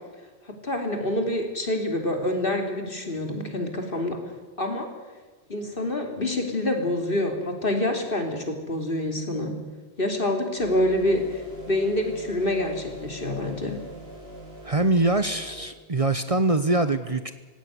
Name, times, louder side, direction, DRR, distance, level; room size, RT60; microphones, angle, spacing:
voice 1, 0.6-4.2 4.6-4.9 5.5-9.5 10.0-13.8, left 1 dB, 55° left, 4 dB, 3.5 m, -26 dB
sound 1, 10.6-15.7, equal, 70° right, 7.9 m, -42 dB
voice 2, 14.6-17.3, right 2 dB, 35° right, 11 dB, 1.0 m, -23 dB
18.5 x 17.0 x 9.4 m, 1.3 s
omnidirectional pair, 1.1 m